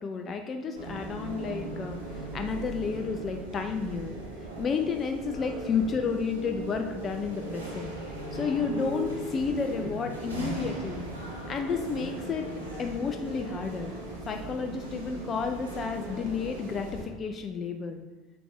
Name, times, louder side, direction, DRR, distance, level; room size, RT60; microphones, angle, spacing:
voice 1, 0.0-4.1 4.6-7.9 8.3-11.1 11.5-12.5 12.8-13.9 14.3-18.0, left 5 dB, 35° left, 5 dB, 0.5 m, -31 dB
sound 1, 0.7-17.0, right 2 dB, 90° right, 1.3 m, -38 dB
7.2 x 5.9 x 2.4 m, 1.2 s
figure-of-eight pair, 70°, 0 cm